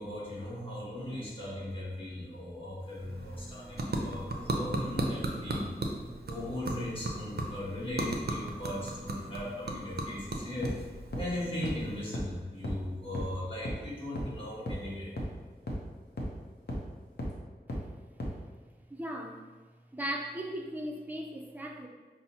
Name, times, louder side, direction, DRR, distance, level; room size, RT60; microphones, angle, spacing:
voice 1, 0.0-5.7 6.3-10.7 11.1-15.1, left 1 dB, 30° left, -7 dB, 1.4 m, -38 dB
sound 1, 2.8-12.2, right 2 dB, 70° right, 0.5 m, -37 dB
sound 2, 10.6-10.7 11.1-11.2 11.6-11.7 12.1-12.2 12.6-12.7 13.1-13.2 13.7-13.8 14.2-14.3 14.7-14.8 15.2-15.3 15.7-15.8 16.2-16.3 16.7-16.8 17.2-17.3 17.7-17.8 18.2-18.3, equal, 75° left, 0.7 m, -33 dB
voice 2, 18.9-19.4 19.9-21.9, equal, 10° right, 1 dB, 0.4 m, -37 dB
5.5 x 2.0 x 2.8 m, 1.4 s
wide cardioid pair, 65°, 17 cm